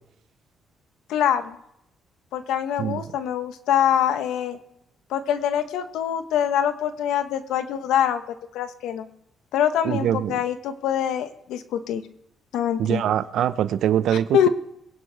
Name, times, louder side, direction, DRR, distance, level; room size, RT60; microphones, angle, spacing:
voice 1, 1.1-1.6 2.3-4.6 5.1-8.2 8.5-9.1 9.5-12.0 12.5-13.0 14.3-14.5, left 9 dB, 85° left, 9 dB, 1.1 m, -24 dB
voice 2, 9.8-10.4 12.8-14.5, right 10 dB, 75° right, 14 dB, 0.7 m, -23 dB
22.5 x 10.5 x 3.5 m, 0.76 s
cardioid pair, 90°, 0 cm